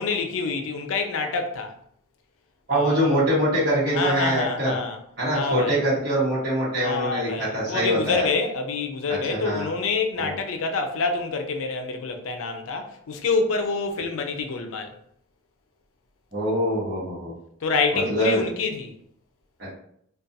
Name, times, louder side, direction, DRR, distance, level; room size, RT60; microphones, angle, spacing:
voice 1, 0.0-1.7 2.7-3.3 3.9-5.0 5.3-5.8 6.8-14.9 17.6-18.9, left 4 dB, 75° left, 0.4 m, -27 dB
voice 2, 2.7-4.7 5.2-8.3 9.1-9.7 10.2-10.3 16.3-17.3 17.9-18.4 19.6-19.8, right 1 dB, 50° right, 1.0 m, -24 dB
2.4 x 2.2 x 2.6 m
head